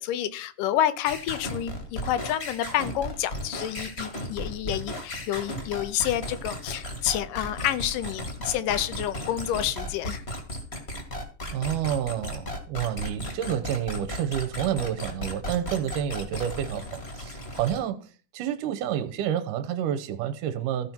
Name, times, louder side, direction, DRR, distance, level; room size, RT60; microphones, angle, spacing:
voice 1, 0.0-10.2, left 11 dB, 80° left, 2.3 m, -29 dB
sound 1, 1.0-17.8, left 1 dB, 30° left, 1.3 m, -35 dB
voice 2, 11.5-20.9, right 10 dB, 80° right, 2.4 m, -29 dB
15.0 x 5.4 x 4.5 m
omnidirectional pair, 3.9 m